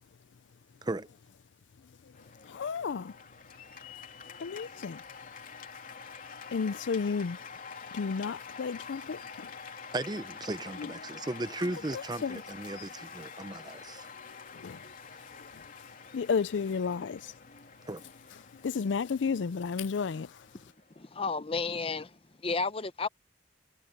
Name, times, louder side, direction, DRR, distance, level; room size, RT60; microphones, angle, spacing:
Cheering / Applause, 2.1-21.4, left 5 dB, 50° left, 3.4 m, -47 dB
voice 1, 2.4-3.1 4.4-5.0 6.5-7.4 7.9-9.5 10.8-10.9 11.9-12.4 14.5-14.8 16.1-17.3 18.6-20.3, left 5 dB, 85° left, 0.4 m, -32 dB
voice 2, 9.9-14.0 17.9-18.0, right 2 dB, 25° right, 0.7 m, -36 dB
voice 3, 21.0-22.1 22.4-23.1, left 4 dB, 30° left, 0.7 m, -32 dB
head